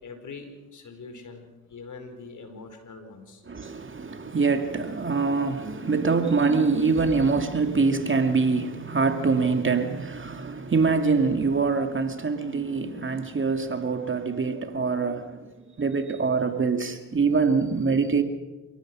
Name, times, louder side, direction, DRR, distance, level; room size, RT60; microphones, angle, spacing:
voice 1, 0.0-3.4, left 4 dB, 55° left, 5.1 m, -43 dB
voice 2, 3.5-15.5 15.8-18.2, right 4 dB, 35° right, 2.3 m, -24 dB
27.0 x 18.0 x 6.3 m
supercardioid pair, 65°, 37 cm